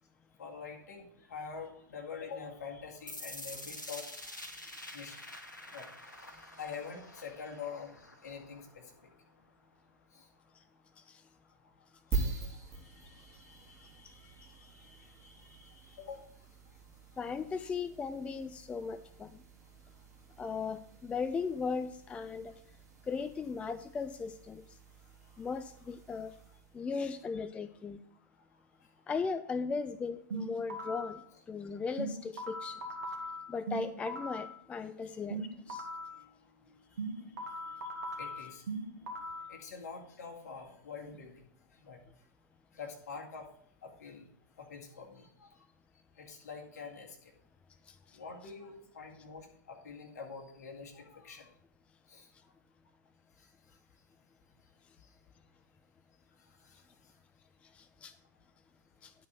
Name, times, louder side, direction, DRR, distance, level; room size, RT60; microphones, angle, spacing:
voice 1, 0.4-9.2 9.6-9.7 10.1-10.6 11.4-17.2 19.8-20.1 25.0-25.5 26.5-26.6 28.2-29.0 31.7-31.8 33.5-33.6 35.0-35.2 36.0-36.5 36.8-42.3 42.7-43.5 43.8-44.3 44.6-45.7 46.1-47.3 48.1-51.6 52.1-52.5 53.3-54.0 54.6-54.7 55.0-55.2 56.4-57.2, left 5 dB, 60° left, 2.0 m, -48 dB
sound 1, 3.1-9.1, left 1 dB, 85° left, 1.2 m, -47 dB
sound 2, 12.1-26.8, right 4 dB, 25° right, 2.5 m, -44 dB
voice 2, 17.2-19.3 20.4-22.5 23.1-24.6 25.4-26.3 26.7-28.0 29.1-31.2 31.5-32.8 33.5-35.8 47.9-48.2 57.7-58.1 59.0-59.1, left 5 dB, 10° left, 0.3 m, -37 dB
sound 3, 30.3-31.2 32.0-34.5 35.3-36.2 37.0-39.5, right 1 dB, 60° right, 1.9 m, -39 dB
10.5 x 4.7 x 6.0 m
figure-of-eight pair, 105°, 10 cm